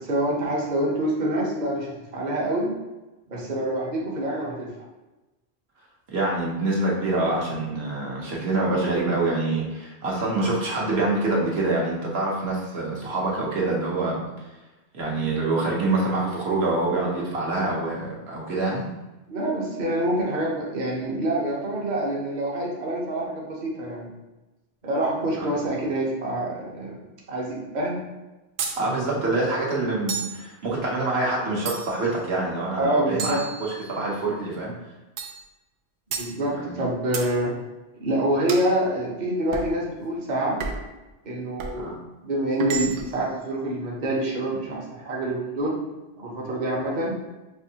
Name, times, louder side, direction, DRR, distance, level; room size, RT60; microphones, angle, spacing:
voice 1, 0.0-2.7 3.3-4.7 19.3-24.1 24.8-27.0 27.3-28.0 32.8-33.4 36.1-37.5 38.0-40.6 41.2-41.9 42.2-45.8 46.2-47.1, right 1 dB, 45° right, -3 dB, 0.9 m, -26 dB
voice 2, 6.1-14.3 14.9-18.9 28.8-34.7 36.5-36.8 41.8-42.0, right 2 dB, 65° right, -4 dB, 1.1 m, -26 dB
sound 1, 28.6-28.8 30.1-30.4 31.7-32.1 33.2-34.1 35.2-35.4 36.1-36.3 37.1-37.3 38.5-38.7 39.5-39.7 40.6-40.9 41.6-41.8 42.6-43.2, right 5 dB, 90° right, 0.9 m, -32 dB
5.5 x 2.6 x 2.8 m, 1.1 s
omnidirectional pair, 1.2 m